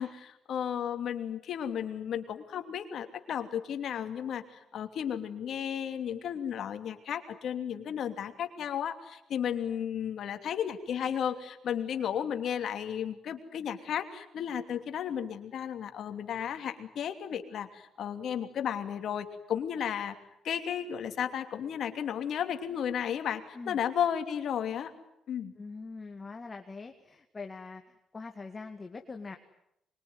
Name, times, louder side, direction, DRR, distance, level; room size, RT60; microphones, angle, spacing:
voice 1, 0.0-20.1 20.4-24.9 25.3-25.5, left 9 dB, 65° left, 6 dB, 3.0 m, -34 dB
voice 2, 25.6-27.8 28.1-29.4, left 4 dB, 30° left, 5 dB, 2.1 m, -43 dB
25.0 x 23.0 x 9.7 m, 0.81 s
cardioid pair, 90°, 0 cm